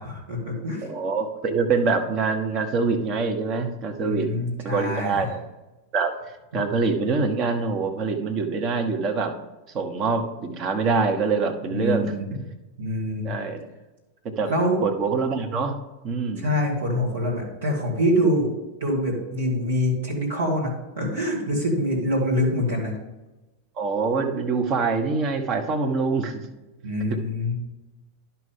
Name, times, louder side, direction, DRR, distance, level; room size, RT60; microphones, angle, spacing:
voice 1, 0.0-0.9 4.0-5.3 11.7-12.2 12.8-13.3 14.5-14.8 16.4-18.5 18.8-22.9 26.8-27.6, equal, 65° right, -2 dB, 2.5 m, -25 dB
voice 2, 0.8-4.3 4.6-5.4 5.9-6.1 6.5-9.3 9.7-12.4 13.2-13.7 14.4-14.5 14.8-15.8 16.0-16.5 23.8-26.4, right 4 dB, 35° right, 3 dB, 1.1 m, -25 dB
11.0 x 5.8 x 3.7 m, 1.1 s
figure-of-eight pair, 90°, 0 cm